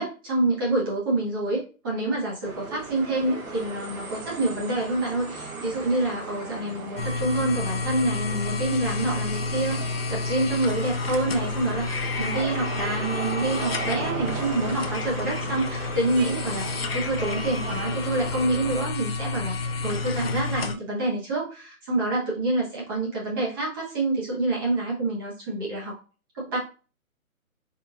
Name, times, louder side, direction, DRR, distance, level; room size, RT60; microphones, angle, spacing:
voice 1, 0.0-19.5 19.8-26.0 26.3-26.6, right 2 dB, 15° right, -5 dB, 1.1 m, -27 dB
sound 1, 2.4-18.9, right 3 dB, 70° right, 1.6 m, -37 dB
sound 2, 7.0-20.7, left 4 dB, 45° left, 0.5 m, -30 dB
4.0 x 4.0 x 2.3 m, 0.35 s
hypercardioid pair, 165°, 43 cm